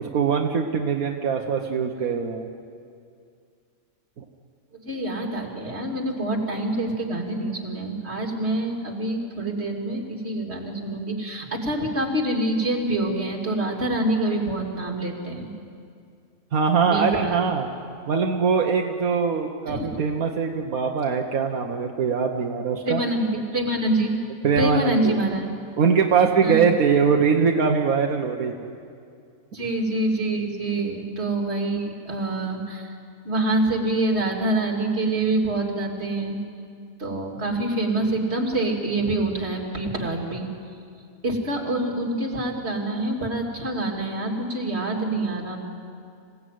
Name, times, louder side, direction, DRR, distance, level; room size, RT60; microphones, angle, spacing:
voice 1, 0.0-2.5 4.2-4.3 16.5-17.7 18.1-23.0 24.4-25.2 25.8-28.7, right 6 dB, 80° right, 2 dB, 1.6 m, -22 dB
voice 2, 4.8-15.5 16.8-17.4 19.7-20.0 22.8-24.2 24.6-25.5 26.4-26.7 29.5-32.9 33.2-36.4 37.0-40.5 41.2-45.6, right 2 dB, 50° right, 1 dB, 3.2 m, -26 dB
27.0 x 17.0 x 9.4 m, 2.3 s
omnidirectional pair, 1.5 m